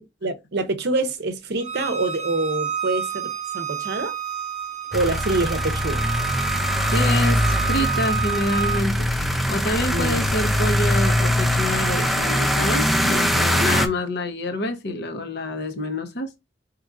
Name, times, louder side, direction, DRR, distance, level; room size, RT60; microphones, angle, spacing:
voice 1, 0.0-4.1 4.9-6.1 9.9-10.3, right 2 dB, 60° right, 0.6 m, -26 dB
Bowed string instrument, 1.6-8.8, right 7 dB, 40° right, 0.9 m, -29 dB
sound 1, 4.9-13.9, equal, ahead, 0.4 m, -22 dB
voice 2, 6.8-9.1 9.5-16.3, left 1 dB, 60° left, 0.8 m, -27 dB
4.9 x 3.0 x 2.4 m
head